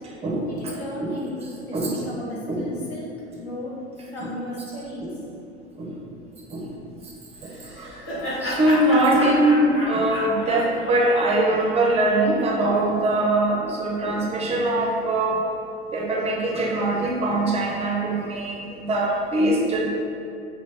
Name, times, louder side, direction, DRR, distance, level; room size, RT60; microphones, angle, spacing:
voice 1, 0.5-1.8 2.1-3.1 3.3-3.8 4.1-5.1, left 1 dB, 70° left, -5 dB, 1.1 m, -35 dB
Laughter, 7.4-12.6, left 1 dB, 40° left, 1.3 m, -33 dB
voice 2, 7.4-15.4 15.9-19.9, right 1 dB, 20° right, -2 dB, 0.5 m, -22 dB
4.1 x 3.1 x 3.3 m, 2.6 s
figure-of-eight pair, 80°, 33 cm